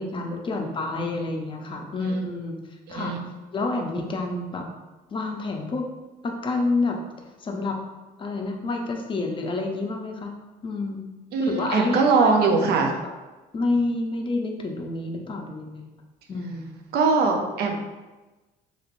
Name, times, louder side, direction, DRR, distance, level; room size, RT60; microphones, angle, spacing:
voice 1, 0.0-2.6 2.9-3.1 3.5-4.7 5.1-5.9 6.2-7.0 7.4-7.8 8.2-10.4 10.6-11.0 11.4-12.6 13.0-13.1 13.5-15.9 16.3-16.7, left 2 dB, 30° left, 2 dB, 0.5 m, -28 dB
voice 2, 2.9-3.2 11.3-13.0 16.9-17.8, right 4 dB, 70° right, 3 dB, 0.5 m, -21 dB
3.1 x 3.1 x 2.5 m, 1.2 s
cardioid pair, 110°, 17 cm